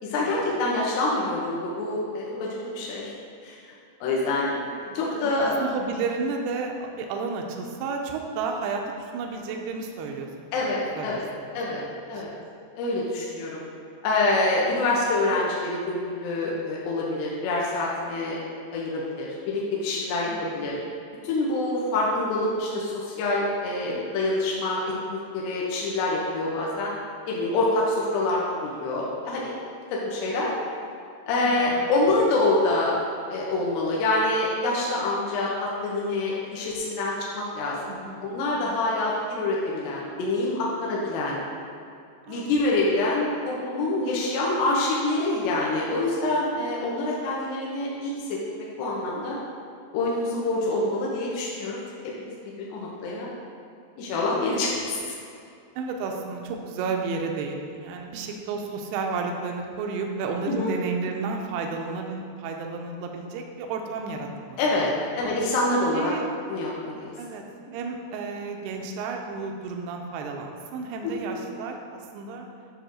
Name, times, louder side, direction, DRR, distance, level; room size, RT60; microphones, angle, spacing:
voice 1, 0.0-3.1 3.4-3.7 4.0-4.6 4.9-5.6 10.5-11.2 11.5-12.3 12.8-13.6 14.0-18.4 18.7-20.7 21.2-26.9 27.3-29.6 29.9-30.5 31.3-33.0 33.3-41.4 42.3-49.4 49.9-51.8 52.2-53.3 54.0-55.2 60.5-60.7 64.6-66.1 66.5-67.1 71.0-71.1, left 2 dB, 75° left, -5 dB, 2.9 m, -26 dB
voice 2, 4.9-10.5 11.0-11.9 12.1-12.4 20.2-20.6 31.4-31.9 37.6-38.3 42.3-42.5 55.8-64.6 65.1-65.3 65.9-66.3 67.2-67.4 67.7-72.5, right 4 dB, 80° right, 2 dB, 2.4 m, -32 dB
10.0 x 3.5 x 6.3 m, 2.5 s
omnidirectional pair, 5.2 m